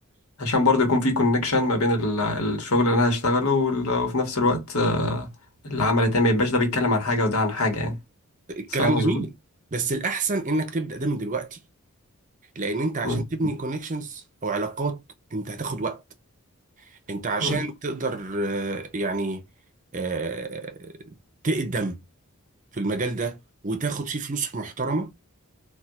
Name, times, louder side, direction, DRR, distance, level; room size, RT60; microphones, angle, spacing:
voice 1, 0.4-5.3 5.6-8.0 8.8-9.2 13.0-13.2 17.4-17.6, left 2 dB, 75° left, 1.3 m, -23 dB
voice 2, 8.5-9.3 9.7-11.6 12.6-15.0 15.3-16.0 16.9-19.4 19.9-21.2 21.4-22.0 22.7-23.4 23.6-25.1, right 3 dB, 35° right, 0.6 m, -28 dB
4.2 x 2.3 x 2.3 m
head